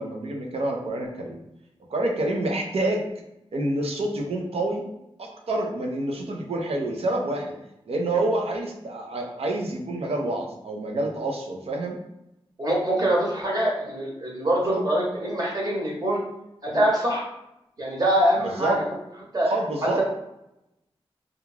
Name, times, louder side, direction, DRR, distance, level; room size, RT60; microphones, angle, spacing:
voice 1, 0.0-1.3 1.9-3.0 3.5-4.8 5.2-7.5 7.9-12.0 14.7-14.9 18.4-18.8 19.4-20.0, right 2 dB, 75° right, 1 dB, 0.6 m, -27 dB
voice 2, 12.6-16.2 16.6-17.2 17.8-18.9 19.3-19.5, right 1 dB, 40° right, -3 dB, 1.0 m, -24 dB
2.4 x 2.3 x 3.1 m, 0.87 s
cardioid pair, 45°, 10 cm